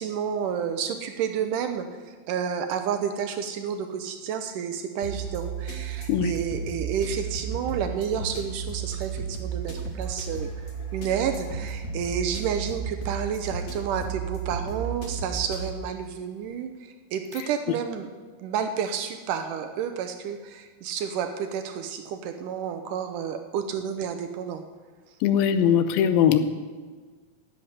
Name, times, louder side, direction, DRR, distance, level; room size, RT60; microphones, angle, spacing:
voice 1, 0.0-18.1 18.4-24.6, right 7 dB, 75° right, 7 dB, 1.9 m, -30 dB
sound 1, 5.0-15.7, right 6 dB, 40° left, 1.1 m, -33 dB
voice 2, 25.2-26.4, left 9 dB, 80° left, 10 dB, 2.4 m, -20 dB
11.0 x 7.9 x 9.7 m, 1.5 s
omnidirectional pair, 4.4 m